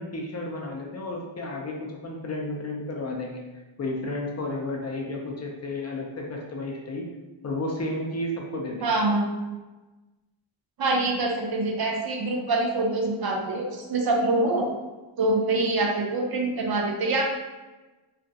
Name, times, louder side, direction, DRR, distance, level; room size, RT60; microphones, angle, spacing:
voice 1, 0.0-3.4 3.8-7.1 7.4-9.0, left 2 dB, 35° left, 0 dB, 0.4 m, -32 dB
voice 2, 8.8-9.2 10.8-14.7 15.2-17.2, right 2 dB, 50° right, 0 dB, 0.6 m, -25 dB
2.4 x 2.0 x 2.6 m, 1.1 s
cardioid pair, 100°, 50 cm